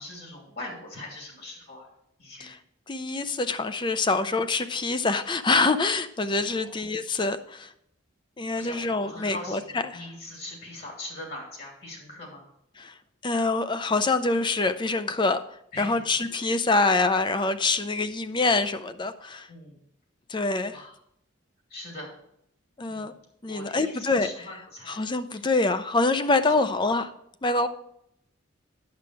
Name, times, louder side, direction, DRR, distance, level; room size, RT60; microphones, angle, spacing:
voice 1, 0.0-1.9 2.2-2.5 6.5-6.7 8.6-12.4 15.7-16.2 19.5-19.8 20.7-20.9 21.7-22.1 22.9-23.2 23.4-25.0, left 1 dB, 50° left, -1 dB, 2.8 m, -41 dB
voice 2, 2.9-7.7 8.4-10.0 12.8-13.0 13.2-15.4 15.8-19.5 20.3-20.8 22.8-23.1 23.4-24.6 24.9-27.1 27.4-27.7, left 3 dB, 25° left, 11 dB, 0.5 m, -25 dB
9.6 x 7.1 x 4.7 m, 0.75 s
head